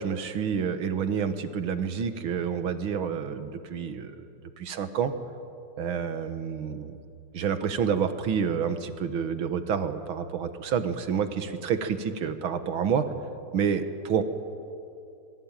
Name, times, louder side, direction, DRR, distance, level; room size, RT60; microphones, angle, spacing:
voice 1, 0.0-4.2 4.6-5.1 5.8-7.0 7.3-13.1 13.5-14.2, right 7 dB, 70° right, 9 dB, 2.2 m, -28 dB
26.5 x 21.0 x 9.1 m, 2.6 s
omnidirectional pair, 2.4 m